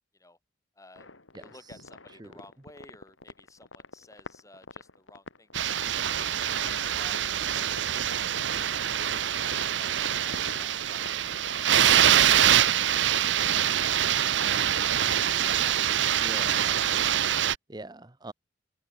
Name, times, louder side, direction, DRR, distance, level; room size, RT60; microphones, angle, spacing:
voice 1, 0.8-1.1 1.3-6.1 6.3-7.5 8.0-8.3 9.5-11.2 11.5-11.7 15.6-15.8, left 2 dB, 15° left, 3.3 m, -54 dB
sound 1, 1.0-13.7, left 2 dB, 85° left, 5.2 m, -46 dB
voice 2, 1.3-1.8 2.2-2.3 16.2-16.8 17.7-18.3, right 2 dB, 20° right, 1.0 m, -43 dB
sound 2, 5.5-17.5, right 10 dB, 70° right, 0.8 m, -25 dB
head